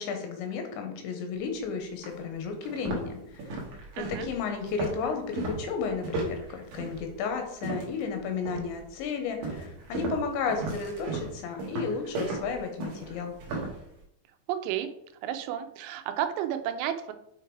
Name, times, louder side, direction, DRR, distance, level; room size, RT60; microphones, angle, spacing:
voice 1, 0.0-3.4 4.1-13.3, left 5 dB, 80° left, 5 dB, 2.9 m, -33 dB
sound 1, 1.4-1.5 2.0-2.2 2.6-8.1 8.5-8.9 9.4-13.8, right 3 dB, 75° right, 1.8 m, -35 dB
voice 2, 4.0-4.3 14.5-14.9 15.2-17.1, right 10 dB, 90° right, 8 dB, 3.1 m, -32 dB
7.8 x 3.3 x 4.5 m, 0.77 s
omnidirectional pair, 5.4 m